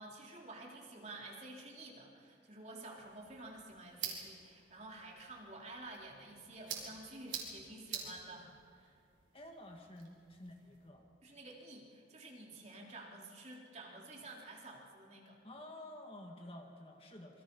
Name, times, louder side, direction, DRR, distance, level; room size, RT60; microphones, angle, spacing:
voice 1, 0.0-9.0 11.2-15.4, right 2 dB, 35° right, -2 dB, 3.5 m, -51 dB
sound 1, 3.0-10.9, right 7 dB, 80° right, 4.5 m, -48 dB
voice 2, 9.3-11.1 15.4-17.4, left 1 dB, 30° left, 2 dB, 1.9 m, -51 dB
27.0 x 22.5 x 5.5 m, 2.3 s
head